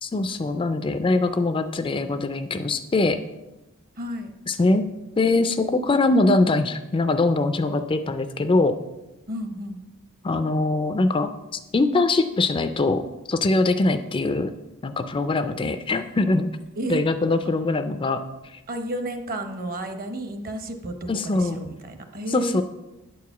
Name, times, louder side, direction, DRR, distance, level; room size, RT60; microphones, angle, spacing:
voice 1, 0.0-3.2 4.5-4.9 5.2-8.8 10.2-14.5 14.8-16.5 16.9-18.2 21.1-21.7 22.3-22.6, left 2 dB, 25° left, 9 dB, 0.3 m, -22 dB
voice 2, 4.0-4.3 9.3-9.8 16.7-17.0 18.7-22.6, right 1 dB, 40° right, 7 dB, 0.9 m, -32 dB
9.3 x 4.7 x 7.0 m, 1.0 s
head